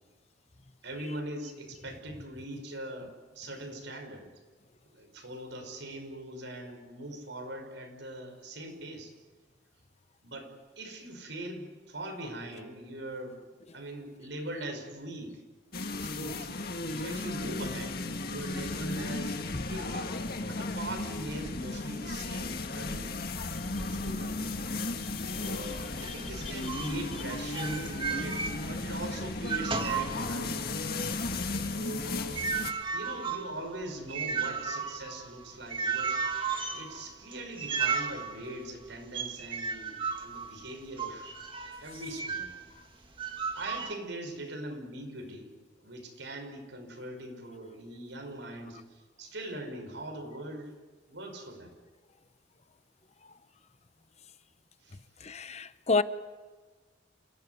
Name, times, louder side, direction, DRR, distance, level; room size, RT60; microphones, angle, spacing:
voice 1, 0.8-4.3 4.9-9.1 10.2-13.4 13.7-15.4 15.9-16.5 17.0-20.1 20.4-23.2 23.8-24.4 25.2-30.8 31.7-32.6 32.9-36.2 36.7-41.3 41.8-42.5 43.5-45.5 45.8-48.8 49.2-50.7 51.1-51.7 54.8-55.0, right 1 dB, 80° right, 5.7 m, -41 dB
sound 1, 15.7-32.7, left 2 dB, 55° left, 1.8 m, -35 dB
sound 2, 26.0-29.0 29.3-30.7 31.1-42.6 43.2-43.9, right 5 dB, 30° right, 1.9 m, -35 dB
voice 2, 55.2-56.0, left 4 dB, 35° left, 0.9 m, -28 dB
28.5 x 17.5 x 9.6 m
head